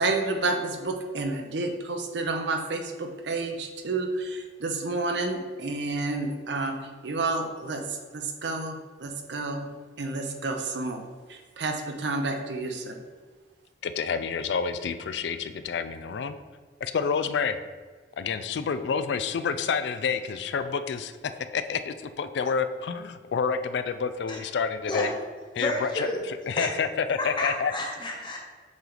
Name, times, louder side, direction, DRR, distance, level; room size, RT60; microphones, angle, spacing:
voice 1, 0.0-9.7 10.0-11.0 11.3-13.0, right 3 dB, 80° right, 4 dB, 0.7 m, -30 dB
voice 2, 13.8-16.4 16.8-17.6 18.2-21.1 21.5-25.1 25.5-27.7, left 6 dB, 75° left, 11 dB, 0.4 m, -28 dB
voice 3, 25.6-26.2 26.6-26.7 27.2-28.4, left 1 dB, 25° left, 0 dB, 1.0 m, -30 dB
7.2 x 3.3 x 3.9 m, 1.5 s
head